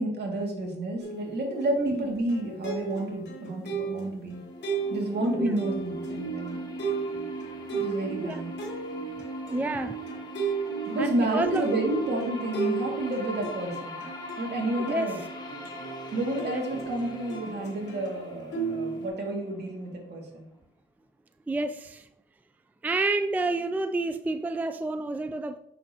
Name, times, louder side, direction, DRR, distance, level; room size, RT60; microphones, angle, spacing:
voice 1, 0.0-4.4 4.9-6.6 7.7-8.5 9.5-9.6 10.9-14.0 14.4-15.2 16.1-20.5, right 1 dB, 60° right, 1 dB, 2.2 m, -30 dB
sound 1, 1.0-18.2 18.5-19.1, right 5 dB, 60° left, 1.4 m, -35 dB
voice 2, 1.7-2.1 5.4-5.6 8.2-8.4 9.5-10.0 11.0-11.7 14.9-15.1 16.4-16.6 21.5-22.1 22.8-25.6, right 2 dB, 10° right, 9 dB, 0.4 m, -29 dB
sound 2, 4.1-20.1, left 1 dB, 20° left, 1.5 m, -41 dB
6.5 x 6.4 x 2.9 m, 0.81 s
cardioid pair, 90°, 20 cm